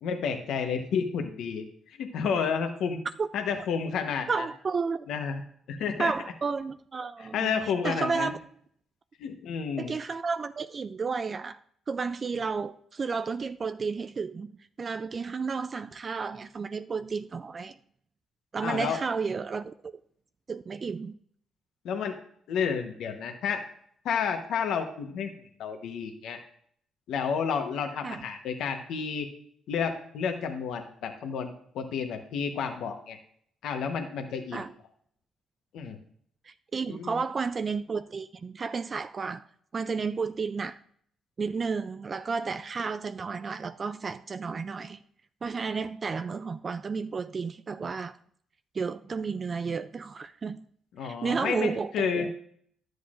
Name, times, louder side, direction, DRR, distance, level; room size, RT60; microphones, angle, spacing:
voice 1, 0.0-3.0 3.3-4.5 5.1-5.4 5.7-6.1 7.2-8.4 9.2-9.9 18.6-19.0 21.8-22.2 22.5-23.6 24.0-25.3 25.6-26.4 27.1-29.3 29.7-33.2 33.6-34.6 35.7-36.0 36.9-37.2 51.0-52.3, left 6 dB, 80° left, 1.0 m, -31 dB
voice 2, 4.3-5.1 6.0-7.5 7.8-8.3 9.8-11.6 11.9-17.8 18.5-20.0 20.5-21.2 28.0-28.3 34.5-34.7 36.4-39.4 39.7-40.8 41.4-45.0 45.4-48.2 48.7-50.6 51.0-52.3, right 5 dB, 40° right, 0.3 m, -32 dB
11.5 x 7.9 x 2.5 m
cardioid pair, 90°, 0 cm